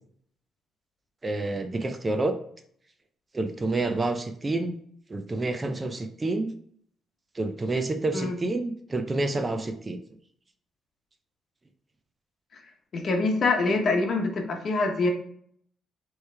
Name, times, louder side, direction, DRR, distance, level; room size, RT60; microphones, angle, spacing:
voice 1, 1.2-2.4 3.3-4.8 5.1-6.5 7.3-10.0, right 2 dB, 25° right, 8 dB, 0.5 m, -28 dB
voice 2, 12.9-15.1, left 3 dB, 50° left, 4 dB, 1.0 m, -25 dB
4.5 x 3.1 x 3.3 m, 0.63 s
cardioid pair, 90°, 0 cm